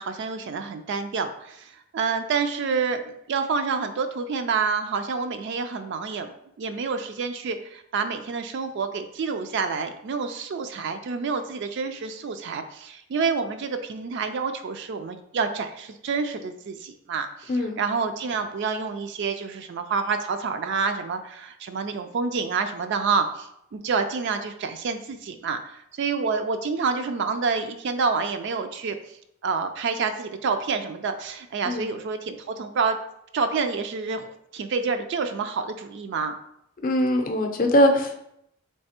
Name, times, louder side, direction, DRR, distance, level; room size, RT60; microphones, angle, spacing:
voice 1, 0.0-6.3 6.6-29.0 29.4-33.0 33.3-36.4, right 5 dB, 55° right, 8 dB, 0.3 m, -28 dB
voice 2, 36.8-38.1, equal, 40° left, 4 dB, 0.5 m, -21 dB
3.4 x 3.2 x 4.2 m, 0.76 s
head